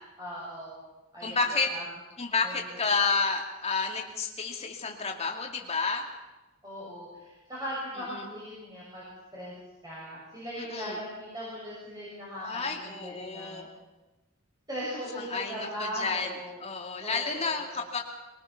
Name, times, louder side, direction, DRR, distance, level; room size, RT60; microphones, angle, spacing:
voice 1, 0.2-0.8 1.1-1.4 1.7-1.8 2.4-2.5 3.0-3.1 6.6-9.0 9.3-9.5 9.8-13.8 14.7-16.7 17.0-17.6, equal, 15° right, -7 dB, 6.1 m, -39 dB
voice 2, 1.2-1.7 2.2-6.0 8.1-8.3 10.6-11.0 12.4-13.7 15.1-18.0, left 4 dB, 30° left, 2 dB, 2.4 m, -31 dB
22.5 x 20.0 x 5.9 m, 1.1 s
head